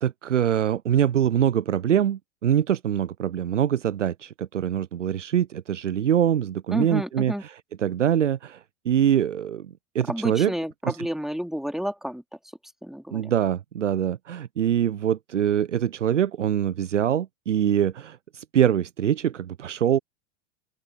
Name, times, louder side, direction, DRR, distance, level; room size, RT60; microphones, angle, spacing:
voice 1, 0.0-10.5 10.8-11.1 13.1-20.0, right 9 dB, 75° right, 0.7 m, -24 dB
voice 2, 6.7-7.4 10.1-12.2 12.8-13.2, equal, ahead, 3.1 m, -30 dB
open air
figure-of-eight pair, 90°, 37 cm